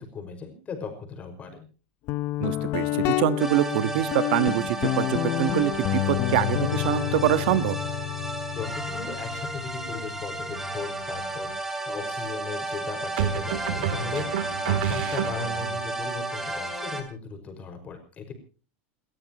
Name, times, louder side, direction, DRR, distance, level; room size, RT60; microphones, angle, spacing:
voice 1, 0.0-1.7 8.5-18.3, left 5 dB, 20° left, 6 dB, 5.4 m, -37 dB
Guitar, 2.1-11.6, left 15 dB, 40° left, 0.8 m, -30 dB
voice 2, 2.4-7.8, right 14 dB, 60° right, 13 dB, 1.4 m, -25 dB
sound 1, 3.4-17.0, right 2 dB, 5° right, 2.8 m, -33 dB
sound 2, 10.5-10.8 13.2-15.8, right 9 dB, 75° right, 3.0 m, -29 dB
29.5 x 13.5 x 3.0 m, 0.38 s
supercardioid pair, 160°, 6 cm